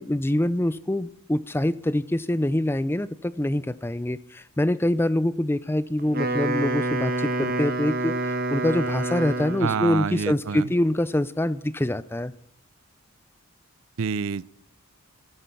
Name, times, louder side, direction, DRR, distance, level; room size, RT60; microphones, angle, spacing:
voice 1, 0.0-12.3, left 1 dB, 10° left, 17 dB, 0.4 m, -25 dB
Wind instrument woodwind instrument, 6.0-9.9, right 2 dB, 40° right, 1.5 m, -27 dB
voice 2, 9.6-10.7 14.0-14.4, right 6 dB, 65° right, 22 dB, 0.4 m, -27 dB
12.5 x 12.0 x 5.8 m, 0.74 s
head